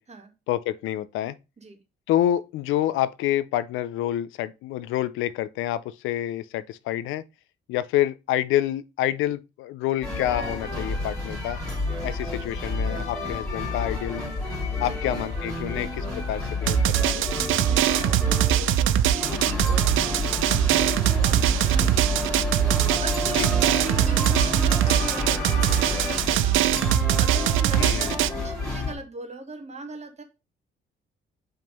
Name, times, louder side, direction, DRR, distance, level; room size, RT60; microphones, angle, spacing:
voice 1, 0.5-1.4 2.1-7.2 7.7-11.6 12.0-14.3 14.8-17.4 23.3-23.5 27.8-28.2, left 12 dB, 90° left, 0.4 m, -28 dB
sound 1, 10.0-28.9, left 2 dB, 5° left, 2.3 m, -29 dB
Drum, 16.7-28.3, right 12 dB, 85° right, 0.4 m, -22 dB
voice 2, 17.3-30.2, right 3 dB, 35° right, 1.7 m, -40 dB
5.5 x 3.7 x 5.1 m
cardioid pair, 90°, 20 cm